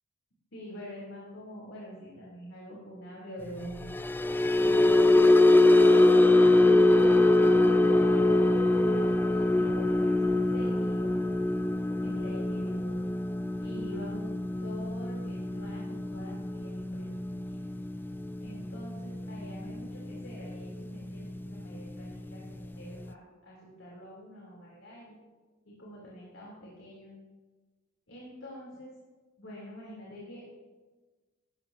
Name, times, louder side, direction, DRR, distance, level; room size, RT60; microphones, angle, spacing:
voice 1, 0.5-3.9 4.6-5.2 6.6-8.0 8.2-11.3 12.0-13.0 13.6-17.6 18.4-23.2 23.4-25.2 25.7-27.1 28.1-28.9 29.4-30.4, equal, 75° left, -6 dB, 3.8 m, -45 dB
sound 1, 3.8-20.2 20.5-20.8 21.2-21.4, left 2 dB, 10° left, 0.4 m, -24 dB
18.0 x 14.0 x 2.9 m, 1.3 s
head